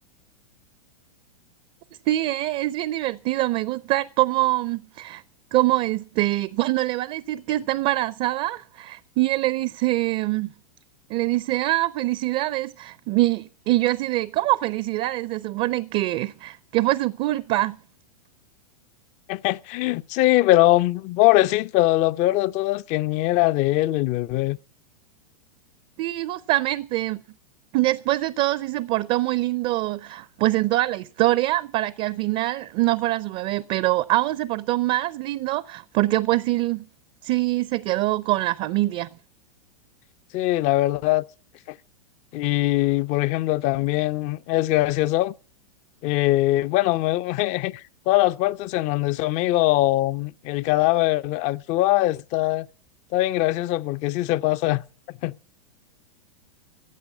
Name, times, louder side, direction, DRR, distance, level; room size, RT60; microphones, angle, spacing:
voice 1, 2.1-5.2 5.5-10.5 11.1-17.8 26.0-27.2 27.7-36.9 37.2-39.1, right 17 dB, 40° right, 0.5 m, -24 dB
voice 2, 19.3-24.6 40.3-41.2 42.3-45.3 46.0-52.7 53.1-54.8 55.2-55.3, left 17 dB, 40° left, 0.6 m, -22 dB
15.0 x 7.5 x 8.2 m
hypercardioid pair, 105°, 19 cm